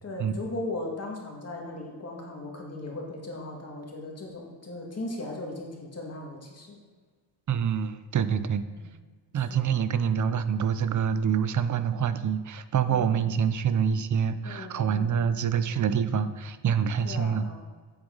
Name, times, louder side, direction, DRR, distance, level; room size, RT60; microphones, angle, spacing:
voice 1, 0.0-6.8 8.7-8.9 9.3-9.7 12.8-13.2 14.4-15.2 17.0-17.6, left 2 dB, 35° left, -1 dB, 2.0 m, -38 dB
voice 2, 7.5-8.6 9.3-17.4, right 7 dB, 40° right, 12 dB, 0.6 m, -26 dB
8.8 x 8.2 x 3.9 m, 1.5 s
cardioid pair, 100°, 45 cm